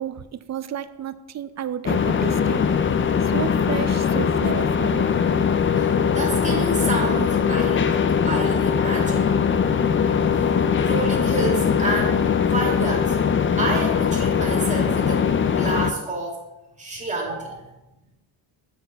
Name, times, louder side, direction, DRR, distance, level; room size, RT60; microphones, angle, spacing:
voice 1, 0.0-2.6 3.3-5.1, right 9 dB, 40° right, 14 dB, 0.4 m, -31 dB
sound 1, 1.9-15.9, left 7 dB, 30° left, 0.4 m, -21 dB
voice 2, 5.7-9.4 10.4-13.2 13.6-16.4 16.8-17.7, right 2 dB, 15° right, -2 dB, 2.1 m, -29 dB
9.1 x 4.3 x 4.0 m, 0.97 s
cardioid pair, 100°, 45 cm